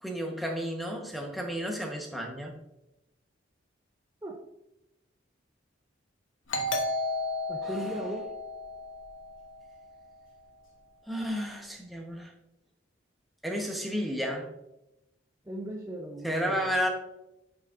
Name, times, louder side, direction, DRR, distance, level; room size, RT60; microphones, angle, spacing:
voice 1, 0.0-2.6 7.6-8.0 11.1-12.3 13.4-14.5 16.2-16.9, equal, ahead, 0 dB, 1.1 m, -32 dB
Doorbell, 6.5-9.9, left 2 dB, 85° left, 1.2 m, -33 dB
voice 2, 7.5-8.3 15.5-16.8, right 1 dB, 15° right, 0 dB, 0.6 m, -37 dB
9.0 x 6.6 x 2.6 m, 0.90 s
head